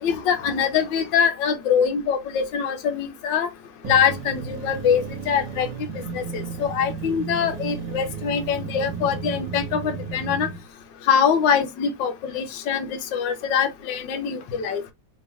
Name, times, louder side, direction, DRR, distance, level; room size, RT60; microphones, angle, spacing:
voice 1, 0.0-3.5 3.9-5.7 6.1-10.5 11.1-14.8, left 7 dB, 85° left, 1.4 m, -23 dB
sound 1, 3.8-10.6, right 5 dB, 80° right, 1.4 m, -33 dB
3.4 x 3.0 x 3.3 m
omnidirectional pair, 1.9 m